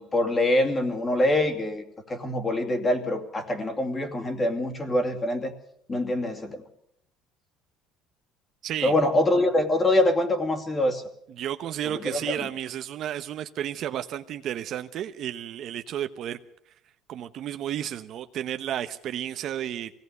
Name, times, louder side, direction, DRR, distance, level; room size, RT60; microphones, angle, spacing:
voice 1, 0.0-5.5 5.9-6.6 8.8-11.0 11.9-12.3, left 1 dB, 20° left, 5 dB, 2.7 m, -24 dB
voice 2, 8.6-8.9 11.3-16.4 17.1-19.9, right 11 dB, 45° right, 9 dB, 0.9 m, -32 dB
23.5 x 17.5 x 6.8 m, 0.72 s
cardioid pair, 150°, 0 cm